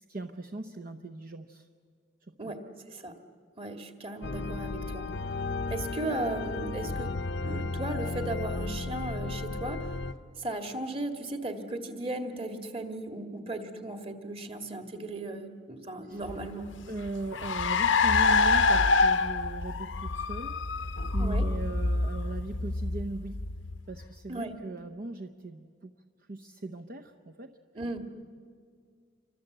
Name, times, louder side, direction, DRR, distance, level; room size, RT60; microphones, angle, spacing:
voice 1, 0.1-1.7 2.3-2.5 16.1-16.2 16.9-23.4 23.9-25.9 26.3-27.6, right 2 dB, 50° right, 6 dB, 0.8 m, -39 dB
voice 2, 2.4-3.2 3.6-5.1 5.7-7.2 7.4-10.0 10.4-16.7 21.2-21.5 24.3-24.5 27.7-28.0, right 2 dB, 30° right, 5 dB, 1.9 m, -36 dB
sound 1, 4.2-10.1, left 3 dB, 65° left, 0.8 m, -34 dB
Car, 16.3-24.0, left 4 dB, 85° left, 0.9 m, -26 dB
28.0 x 25.0 x 7.9 m, 2.1 s
head